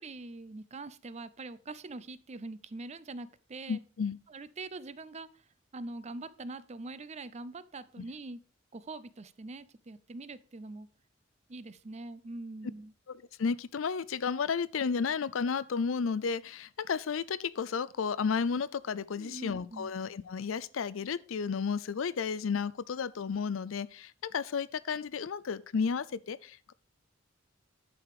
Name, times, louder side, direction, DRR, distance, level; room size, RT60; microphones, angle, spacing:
voice 1, 0.0-3.8 4.3-5.5 5.7-8.4 8.7-10.9 11.5-12.9 19.2-19.9, right 2 dB, 35° right, 0.5 m, -43 dB
voice 2, 3.7-4.2 8.0-8.1 13.4-26.7, left 5 dB, 85° left, 0.5 m, -32 dB
11.0 x 5.0 x 4.9 m
head